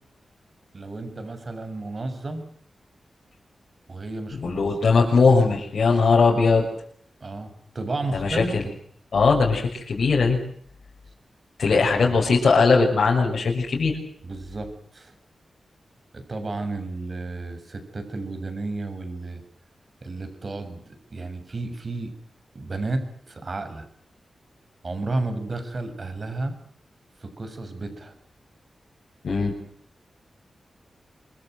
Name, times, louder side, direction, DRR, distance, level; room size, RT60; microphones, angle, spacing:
voice 1, 0.7-2.5 3.9-5.0 7.2-8.7 11.7-12.2 14.2-15.1 16.1-19.4 20.0-22.1 22.5-23.9 24.8-26.5 27.2-28.1, right 2 dB, 45° right, 8 dB, 7.2 m, -32 dB
voice 2, 4.4-6.6 8.1-8.6 9.1-10.4 11.6-14.0 29.2-29.5, left 4 dB, 70° left, -2 dB, 6.3 m, -19 dB
27.0 x 23.0 x 8.1 m, 0.62 s
wide cardioid pair, 85°, 0 cm